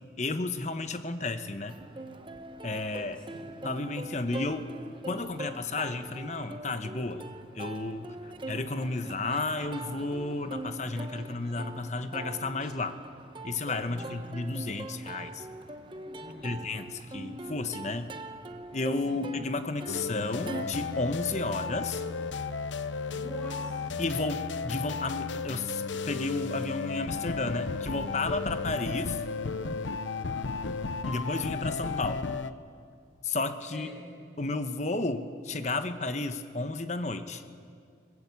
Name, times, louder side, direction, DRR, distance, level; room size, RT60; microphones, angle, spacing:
voice 1, 0.2-1.8 2.6-3.2 3.6-4.7 5.1-7.3 7.5-13.0 13.4-15.5 16.4-18.1 18.7-22.0 24.0-29.2 31.1-32.3 33.2-33.9 34.4-37.4, left 3 dB, 40° left, 9 dB, 1.0 m, -32 dB
Plucked string instrument, 1.7-20.6, right 2 dB, 25° right, 0.9 m, -42 dB
voice 2, 3.1-3.5 8.3-8.5 8.7-9.0 13.8-14.2 16.2-16.6 19.0-19.3 23.1-23.9 30.1-30.5 33.7-34.0, equal, 5° left, -3 dB, 6.5 m, -46 dB
sound 1, 19.9-32.5, left 4 dB, 80° left, 0.7 m, -34 dB
22.5 x 21.0 x 8.2 m, 2.2 s
head